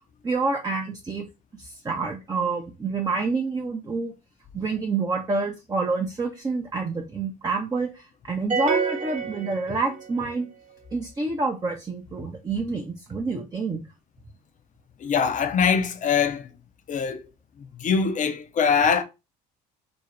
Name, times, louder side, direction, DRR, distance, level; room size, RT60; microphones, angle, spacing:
voice 1, 0.2-1.3 1.6-4.1 4.5-10.5 10.9-13.8, right 3 dB, 20° right, 0.5 m, -28 dB
sound 1, 8.5-10.2, right 5 dB, 35° right, 1.0 m, -27 dB
voice 2, 15.0-16.5 16.9-17.2 17.8-19.0, left 6 dB, 40° left, 0.5 m, -22 dB
2.6 x 2.0 x 3.0 m
hypercardioid pair, 60°, 21 cm